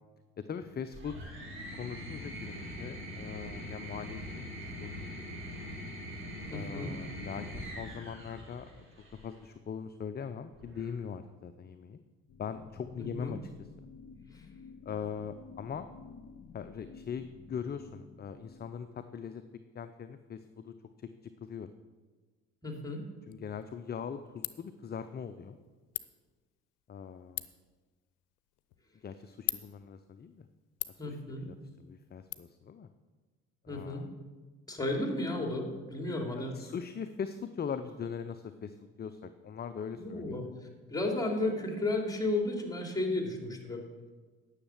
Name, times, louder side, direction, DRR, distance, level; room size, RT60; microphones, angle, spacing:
voice 1, 0.5-1.3 1.8-5.6 6.5-8.8 9.2-12.0 12.4-13.4 14.9-15.9 16.5-19.4 19.7-21.1 21.4-21.7 23.3-25.6 26.9-27.5 29.0-30.5 31.1-31.2 31.5-32.9 33.6-34.1 36.3-40.4, left 7 dB, 30° left, 10 dB, 0.6 m, -41 dB
sound 1, 0.9-9.3 10.5-11.2, equal, 35° right, 3.7 m, -43 dB
voice 2, 6.5-6.9 13.0-13.4 14.3-14.5 22.6-23.0 31.0-31.5 33.7-34.0 34.7-36.5 39.9-40.5 40.9-43.8, left 2 dB, 10° left, 1 dB, 2.9 m, -33 dB
sound 2, 12.3-19.0, left 5 dB, 45° left, 1.0 m, -52 dB
Ratchet pawl, 23.3-32.3, left 18 dB, 70° left, 0.6 m, -45 dB
10.0 x 6.6 x 7.3 m, 1.4 s
hypercardioid pair, 55°, 34 cm